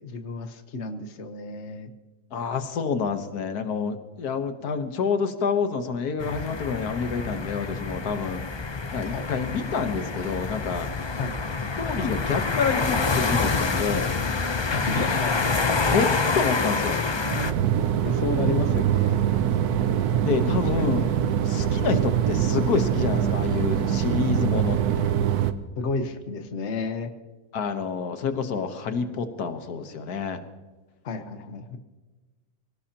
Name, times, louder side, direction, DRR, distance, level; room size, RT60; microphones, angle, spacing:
voice 1, 0.0-1.9 9.1-9.3 11.2-11.3 14.7-15.6 18.0-19.2 20.8-20.9 25.8-27.1 31.0-31.8, left 3 dB, 50° left, 8 dB, 1.4 m, -31 dB
voice 2, 2.3-8.4 8.9-10.9 11.8-14.1 15.9-17.1 20.2-21.1 21.4-25.1 27.5-30.4, left 5 dB, 90° left, 8 dB, 1.7 m, -28 dB
sound 1, 6.2-17.5, left 4 dB, 30° left, 0.5 m, -27 dB
sound 2, 17.3-25.5, right 9 dB, 85° right, 1.3 m, -23 dB
25.5 x 17.5 x 2.9 m, 1.3 s
omnidirectional pair, 1.6 m